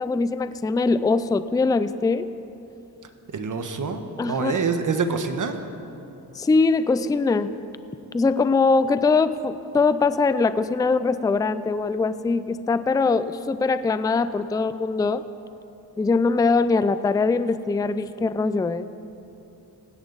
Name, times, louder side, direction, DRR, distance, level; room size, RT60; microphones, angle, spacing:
voice 1, 0.0-2.3 4.2-4.6 6.3-7.5 8.1-15.3 16.0-18.8, left 4 dB, 10° left, 13 dB, 0.4 m, -22 dB
voice 2, 3.3-5.6, right 5 dB, 50° right, 7 dB, 1.2 m, -26 dB
18.0 x 16.5 x 4.0 m, 2.8 s
cardioid pair, 100°, 40 cm